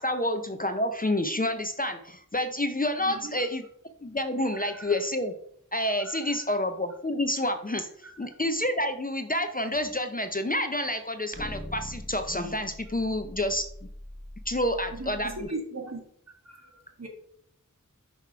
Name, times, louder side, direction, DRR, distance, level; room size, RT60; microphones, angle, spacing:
voice 1, 0.0-3.6 4.0-5.3 5.7-7.9 8.2-13.6 14.5-15.3, left 1 dB, 25° left, 0.5 m, -28 dB
voice 2, 3.0-3.4 4.5-5.0 6.0-6.6 8.0-8.1 14.9-16.0 16.4-17.1, right 2 dB, 50° right, 1.5 m, -39 dB
sound 1, 9.7-9.8 11.3-15.4, left 1 dB, 10° left, 1.1 m, -42 dB
6.0 x 2.9 x 5.6 m
wide cardioid pair, 45°, 33 cm